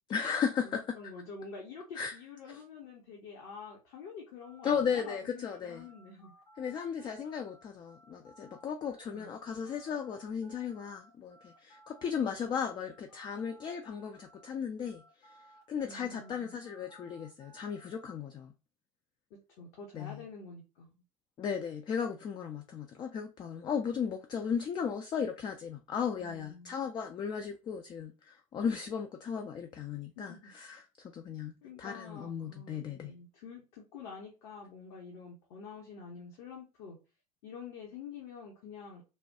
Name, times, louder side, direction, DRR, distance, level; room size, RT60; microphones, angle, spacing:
voice 1, 0.1-1.0 2.0-2.1 4.6-5.9 6.6-15.4 15.7-18.5 19.9-20.2 21.4-33.1, left 7 dB, 25° left, 0.3 m, -36 dB
voice 2, 0.6-6.3 7.0-7.1 9.0-9.3 15.8-16.6 19.3-21.0 26.2-26.7 30.2-30.5 31.6-37.0 37.4-39.0, left 5 dB, 55° left, 0.9 m, -48 dB
sound 1, 4.4-14.5 14.8-18.1, right 1 dB, 85° left, 1.2 m, -60 dB
3.2 x 2.2 x 2.7 m
figure-of-eight pair, 75°, 19 cm